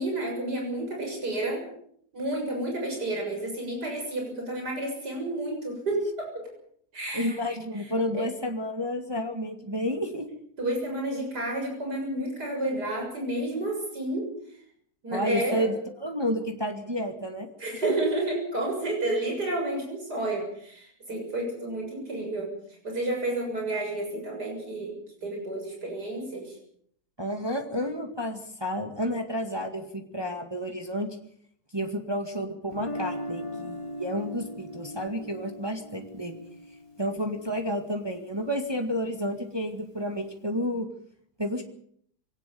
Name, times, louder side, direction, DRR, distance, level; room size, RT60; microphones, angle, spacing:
voice 1, 0.0-1.6 2.1-6.5 6.9-7.4 7.7-8.3 10.6-14.6 15.0-15.7 17.6-22.5 22.8-26.6, right 1 dB, 80° right, 0 dB, 7.4 m, -31 dB
voice 2, 7.1-10.3 15.1-17.5 17.8-18.0 27.2-31.2 31.7-36.4 37.0-40.9 41.4-41.6, equal, 15° right, 3 dB, 2.0 m, -31 dB
Guitar, 32.7-38.7, left 1 dB, 20° left, 2.4 m, -39 dB
23.0 x 18.0 x 7.0 m, 0.65 s
omnidirectional pair, 1.7 m